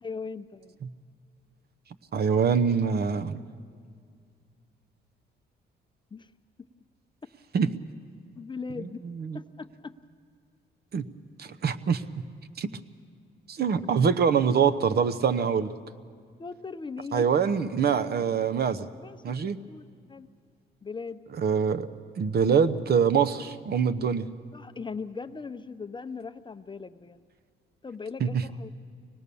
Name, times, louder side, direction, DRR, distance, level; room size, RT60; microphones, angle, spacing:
voice 1, 0.0-0.8 6.1-6.3 8.4-9.0 9.3-9.9 16.4-17.3 19.0-20.3 20.8-21.2 24.5-27.2 27.8-28.7, left 4 dB, 25° left, 10 dB, 0.6 m, -39 dB
voice 2, 2.1-3.4 7.5-7.7 8.8-9.4 10.9-11.0 11.4-12.0 12.6-12.7 13.5-15.7 17.1-18.9 19.2-19.6 21.4-21.9 22.2-24.3 28.2-28.4, right 6 dB, 55° right, 11 dB, 0.9 m, -24 dB
24.5 x 19.5 x 7.0 m, 2.1 s
cardioid pair, 90°, 20 cm